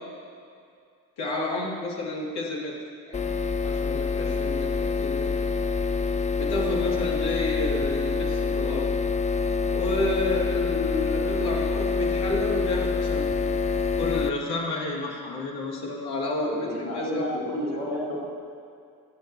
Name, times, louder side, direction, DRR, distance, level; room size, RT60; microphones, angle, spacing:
voice 1, 1.2-2.7 3.1-3.2 3.6-5.3 6.4-8.9 9.7-13.3 14.0-17.3, left 2 dB, 50° left, -3 dB, 2.9 m, -30 dB
sound 1, 3.1-14.3, left 5 dB, 15° left, 0.6 m, -26 dB
voice 2, 16.6-18.3, equal, 85° right, -9 dB, 3.4 m, -30 dB
30.0 x 10.5 x 3.0 m, 2.3 s
figure-of-eight pair, 45°, 49 cm